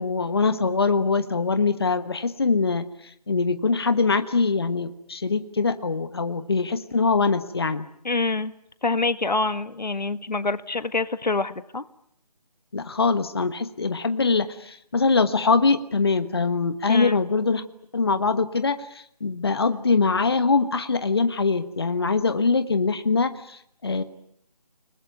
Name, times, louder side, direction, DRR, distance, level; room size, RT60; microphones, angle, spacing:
voice 1, 0.0-7.9 12.7-17.6 17.9-24.0, left 4 dB, 35° left, 10 dB, 1.3 m, -23 dB
voice 2, 8.0-8.5 8.8-11.8 16.9-17.2, left 3 dB, 90° left, 12 dB, 1.7 m, -26 dB
29.5 x 20.5 x 9.2 m, 0.71 s
figure-of-eight pair, 175°, 21 cm